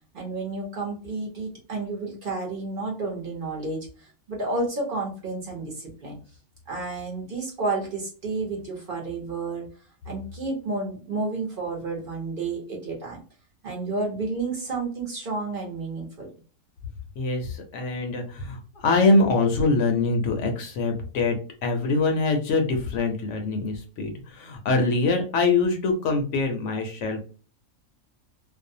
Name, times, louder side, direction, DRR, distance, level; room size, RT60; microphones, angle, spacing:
voice 1, 0.1-6.2 6.7-9.6 10.0-13.2 13.6-16.3, right 3 dB, 45° right, -1 dB, 0.9 m, -31 dB
voice 2, 17.2-21.4 21.6-27.2, left 3 dB, 70° left, 4 dB, 0.9 m, -24 dB
2.6 x 2.1 x 2.6 m, 0.37 s
omnidirectional pair, 1.4 m